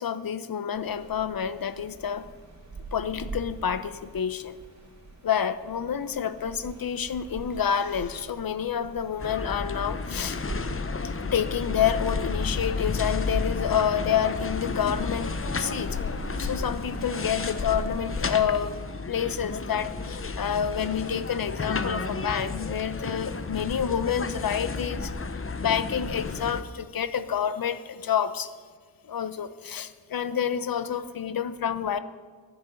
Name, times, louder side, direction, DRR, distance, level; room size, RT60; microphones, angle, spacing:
voice 1, 0.0-2.3 2.9-4.5 5.2-10.4 11.2-16.0 16.4-25.1 25.6-28.5 29.0-32.0, left 8 dB, 55° left, 13 dB, 0.9 m, -28 dB
sound 1, 0.7-18.7, right 3 dB, 40° right, 3.3 m, -44 dB
sound 2, 9.2-26.6, left 4 dB, 30° left, 1.0 m, -32 dB
11.0 x 10.0 x 7.9 m, 1.5 s
supercardioid pair, 45°, 42 cm